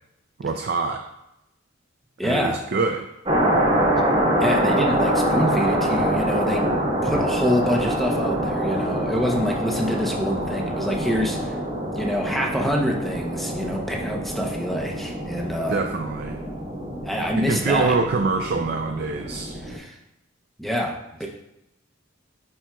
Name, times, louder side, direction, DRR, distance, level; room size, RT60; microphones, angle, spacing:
voice 1, 0.4-1.1 2.2-3.1 15.7-16.4 17.4-19.6, right 4 dB, 50° right, 4 dB, 0.4 m, -25 dB
voice 2, 2.2-2.7 4.4-6.7 7.0-11.6 11.9-15.8 17.0-17.9 19.6-20.0 20.6-21.3, equal, ahead, 0 dB, 0.7 m, -26 dB
sound 1, 3.2-19.8, right 1 dB, 25° right, 1.1 m, -25 dB
10.5 x 4.3 x 2.3 m, 0.88 s
head